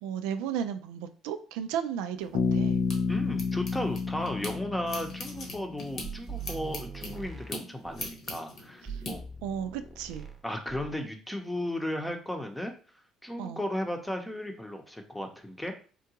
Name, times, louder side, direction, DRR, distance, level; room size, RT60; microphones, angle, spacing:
voice 1, 0.0-2.8 8.9-9.0 9.4-10.3 13.4-13.6, right 8 dB, 90° right, 8 dB, 0.3 m, -34 dB
sound 1, 2.2-4.5 4.9-9.1, left 2 dB, 55° left, 1.0 m, -41 dB
Bass guitar, 2.3-6.0, left 5 dB, 75° left, 0.4 m, -30 dB
voice 2, 3.1-9.2 10.4-12.7 13.2-15.7, left 1 dB, 5° left, 4 dB, 0.7 m, -35 dB
sound 2, 6.0-8.2 8.9-10.4 10.7-11.0, right 5 dB, 25° right, 0.8 m, -42 dB
3.6 x 2.2 x 2.8 m, 0.39 s
supercardioid pair, 85°, 0 cm